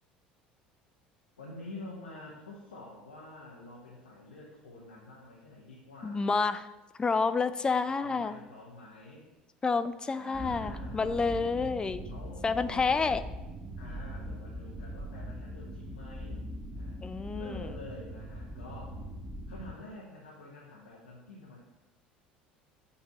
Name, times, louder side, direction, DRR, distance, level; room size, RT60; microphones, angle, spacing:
voice 1, 1.4-6.5 7.9-9.3 10.0-11.1 12.1-13.3 13.8-16.5 16.7-17.0 17.3-19.0 19.5-21.6, left 2 dB, 75° left, -4 dB, 1.0 m, -48 dB
voice 2, 6.0-6.7 7.0-8.4 9.6-12.0 12.4-13.2 17.0-17.6, left 4 dB, 20° left, 12 dB, 0.3 m, -29 dB
sound 1, 10.3-19.7, equal, 30° right, 0.9 m, -41 dB
6.9 x 2.7 x 5.6 m, 1.0 s
figure-of-eight pair, 65°, 5 cm